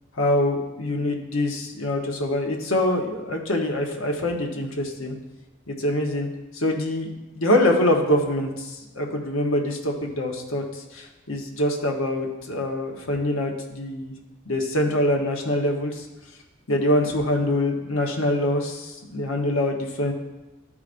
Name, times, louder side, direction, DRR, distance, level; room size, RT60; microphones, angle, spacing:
voice 1, 0.2-5.1 5.7-6.3 6.5-7.1 7.3-14.1 14.5-16.1 16.7-20.1, left 1 dB, 65° left, 1 dB, 1.0 m, -24 dB
12.5 x 4.8 x 2.6 m, 1.1 s
head